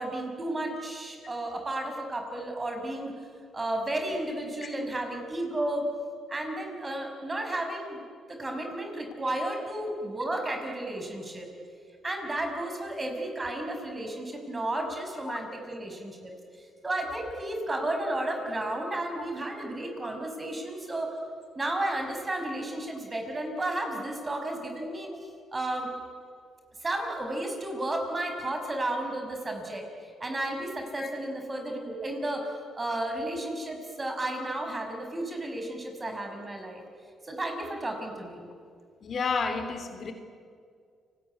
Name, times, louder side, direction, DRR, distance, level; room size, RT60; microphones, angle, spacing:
voice 1, 0.0-3.1 3.5-5.9 6.3-8.0 8.3-11.5 12.0-21.1 21.6-25.1 25.5-25.9 26.8-32.5 32.7-36.8 37.2-38.4, right 1 dB, 25° right, 4 dB, 6.1 m, -33 dB
voice 2, 39.0-40.1, left 4 dB, 50° left, 7 dB, 3.0 m, -31 dB
29.5 x 19.5 x 9.7 m, 2.2 s
cardioid pair, 90°, 0 cm